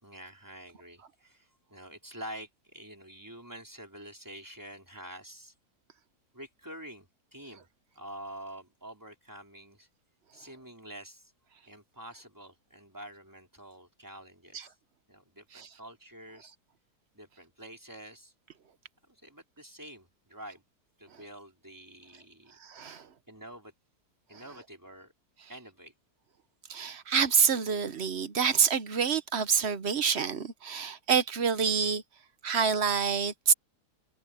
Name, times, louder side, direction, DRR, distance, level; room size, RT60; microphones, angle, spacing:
voice 1, 0.0-5.5 6.3-7.7 7.9-9.9 10.3-11.3 11.7-14.7 15.1-16.5 17.1-18.3 19.1-20.6 21.0-22.6 23.3-23.7 24.3-25.1 25.5-25.9, right 1 dB, 10° right, 4.5 m, -47 dB
voice 2, 22.6-23.1 26.7-32.0 32.4-33.5, right 6 dB, 45° right, 1.1 m, -27 dB
omnidirectional pair, 1.7 m